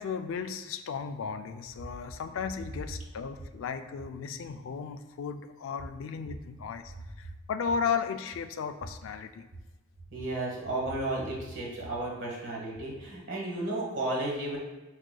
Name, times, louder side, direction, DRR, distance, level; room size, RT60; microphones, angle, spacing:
voice 1, 0.0-9.5, left 6 dB, 85° left, 9 dB, 0.3 m, -35 dB
voice 2, 10.1-14.6, right 2 dB, 65° right, -3 dB, 1.3 m, -33 dB
4.7 x 4.7 x 2.2 m, 1.1 s
head